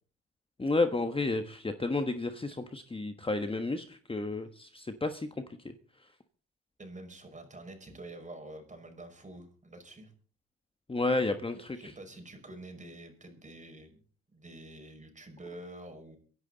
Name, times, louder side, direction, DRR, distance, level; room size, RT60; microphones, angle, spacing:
voice 1, 0.6-5.3 5.6-5.7 10.9-11.9, left 2 dB, 20° left, 8 dB, 1.2 m, -31 dB
voice 2, 6.8-10.1 11.7-14.0 14.3-16.2, right 1 dB, 25° right, 5 dB, 5.6 m, -47 dB
24.0 x 11.0 x 4.0 m, 0.42 s
cardioid pair, 90°, 30 cm